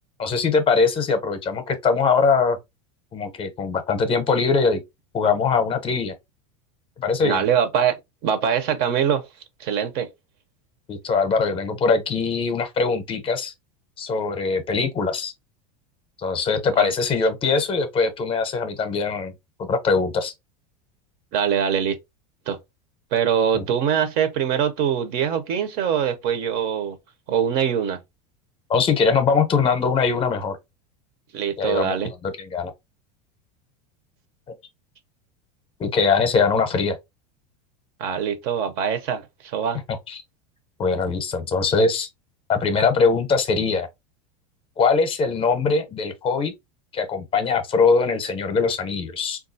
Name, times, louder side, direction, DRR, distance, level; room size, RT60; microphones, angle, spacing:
voice 1, 0.2-2.6 3.1-4.8 5.1-6.1 7.0-7.4 10.9-13.5 14.0-15.3 16.2-19.3 19.6-20.3 23.5-23.6 28.7-30.6 31.6-32.7 35.8-37.0 40.1-40.2 40.8-42.1 42.5-43.9 44.8-46.5 46.9-49.4, left 4 dB, 25° left, 0.6 m, -22 dB
voice 2, 7.2-9.3 9.6-10.1 16.8-16.9 21.3-22.0 22.5-22.6 23.1-27.0 27.3-28.0 31.3-32.1 38.0-39.8, right 8 dB, 50° right, 0.6 m, -23 dB
3.6 x 2.3 x 2.6 m
supercardioid pair, 130°, 20 cm